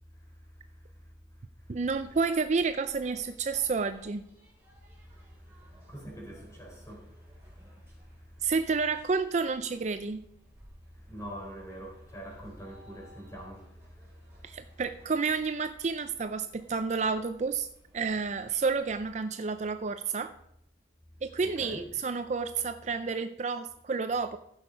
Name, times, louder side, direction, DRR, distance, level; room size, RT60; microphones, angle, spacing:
voice 1, 1.7-4.2 8.4-10.2 14.4-17.7 17.9-20.3 21.2-24.4, right 4 dB, 40° right, 0.4 m, -30 dB
sound 1, 1.9-19.2, equal, 15° right, 3.4 m, -58 dB
voice 2, 5.4-7.4 7.7-7.8 8.4-8.5 10.9-14.7 21.4-21.8, equal, 15° left, 3.8 m, -45 dB
15.0 x 6.6 x 5.1 m
head